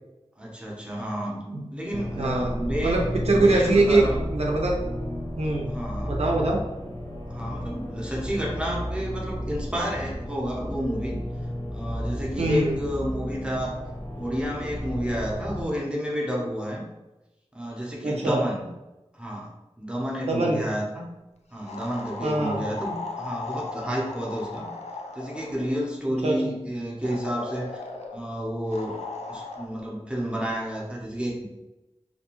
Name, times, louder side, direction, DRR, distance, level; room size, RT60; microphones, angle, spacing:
voice 1, 0.4-1.5 1.7-3.0 3.3-4.2 5.7-6.2 7.3-11.2 11.7-13.8 14.2-16.8 17.5-18.7 19.1-21.1 21.5-24.7 25.1-27.8 28.1-29.0 29.3-31.4, equal, 10° right, -3 dB, 0.7 m, -30 dB
sound 1, 1.9-15.7, equal, 35° left, 1.0 m, -33 dB
voice 2, 2.2-2.5 2.8-4.1 4.3-4.8 5.4-5.7 6.1-6.6 12.4-12.8 18.0-18.4 20.3-20.6 22.2-22.6 26.2-26.5, right 2 dB, 70° right, -1 dB, 0.5 m, -23 dB
sound 2, 21.7-25.7 27.0-28.2 28.7-29.7, left 3 dB, 85° left, 0.4 m, -37 dB
2.5 x 2.2 x 2.9 m, 1.0 s
wide cardioid pair, 60°, 11 cm